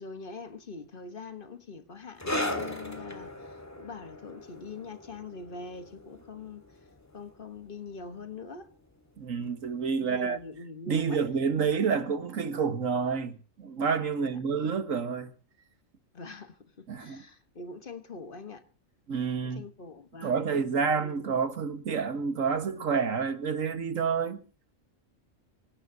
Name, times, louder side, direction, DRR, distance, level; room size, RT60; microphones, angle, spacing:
voice 1, 0.0-6.6 7.1-8.7 10.0-11.3 11.6-11.7 14.2-14.4 16.1-18.6 19.4-21.2, left 4 dB, 45° left, 1.3 m, -43 dB
sound 1, 2.2-9.2 9.4-9.7 10.4-10.5, left 1 dB, 15° left, 1.7 m, -38 dB
voice 2, 9.2-10.4 10.9-15.3 16.9-17.2 19.1-19.6 20.2-24.4, right 6 dB, 85° right, 1.7 m, -29 dB
25.5 x 17.0 x 2.7 m
omnidirectional pair, 1.3 m